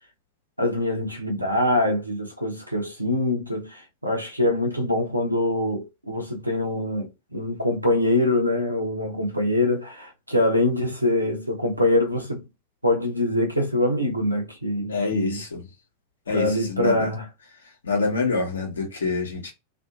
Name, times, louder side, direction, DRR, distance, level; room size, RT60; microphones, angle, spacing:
voice 1, 0.6-12.4 12.8-15.4 16.3-17.3, left 1 dB, 90° right, 0.8 m, -24 dB
voice 2, 14.9-15.6 16.3-17.1 17.8-19.5, left 4 dB, 70° left, 1.1 m, -26 dB
2.7 x 2.5 x 2.4 m
figure-of-eight pair, 90°, 0 cm